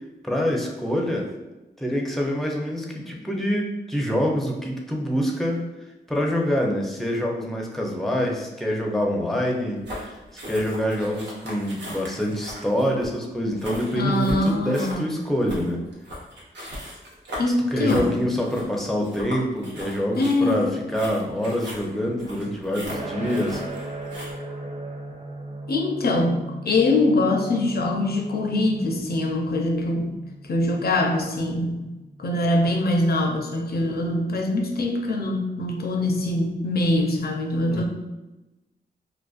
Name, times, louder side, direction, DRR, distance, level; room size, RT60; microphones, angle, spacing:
voice 1, 0.2-1.3 1.8-5.7 6.1-15.9 17.7-23.6 37.7-37.9, equal, ahead, 0 dB, 0.5 m, -26 dB
sound 1, 9.8-24.3, equal, 85° right, 0.7 m, -38 dB
voice 2, 13.9-15.2 17.4-18.1 20.2-20.7 25.7-30.2 30.5-31.9 32.2-37.9, left 2 dB, 60° left, 1 dB, 0.5 m, -23 dB
sound 2, 22.8-33.8, right 2 dB, 40° right, 0.6 m, -39 dB
2.4 x 2.2 x 2.4 m, 1.1 s
cardioid pair, 50°, 18 cm